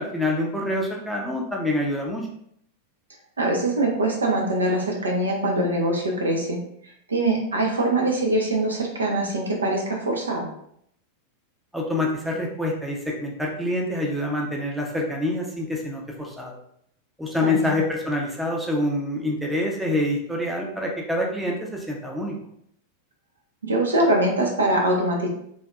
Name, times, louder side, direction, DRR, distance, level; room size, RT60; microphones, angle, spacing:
voice 1, 0.0-2.3 11.7-16.6 17.2-22.4, left 1 dB, 5° right, -1 dB, 0.6 m, -26 dB
voice 2, 3.4-6.6 7.1-10.5 17.4-17.7 23.6-25.3, right 1 dB, 75° right, 0 dB, 0.6 m, -23 dB
3.5 x 2.6 x 2.3 m, 0.70 s
figure-of-eight pair, 90°, 0 cm